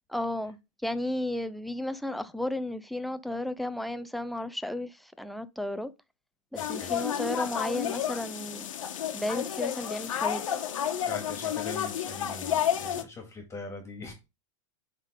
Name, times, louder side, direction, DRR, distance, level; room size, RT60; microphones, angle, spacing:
voice 1, 0.1-5.9 6.5-8.7 9.1-10.6, left 1 dB, ahead, 0.4 m, -33 dB
sound 1, 6.6-13.0, left 9 dB, 90° left, 1.2 m, -31 dB
voice 2, 6.6-7.0 11.1-14.1, left 3 dB, 15° left, 2.0 m, -42 dB
9.2 x 3.7 x 3.6 m
hypercardioid pair, 130°, 16 cm